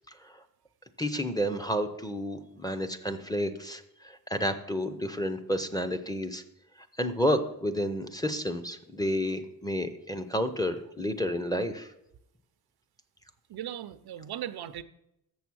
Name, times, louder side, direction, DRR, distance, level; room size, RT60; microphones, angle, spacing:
voice 1, 1.0-3.8 4.3-6.4 7.0-11.9, equal, 10° left, 9 dB, 0.5 m, -30 dB
voice 2, 13.5-14.8, right 11 dB, 90° right, 13 dB, 0.6 m, -38 dB
7.0 x 6.7 x 6.1 m, 0.82 s
wide cardioid pair, 155°, 37 cm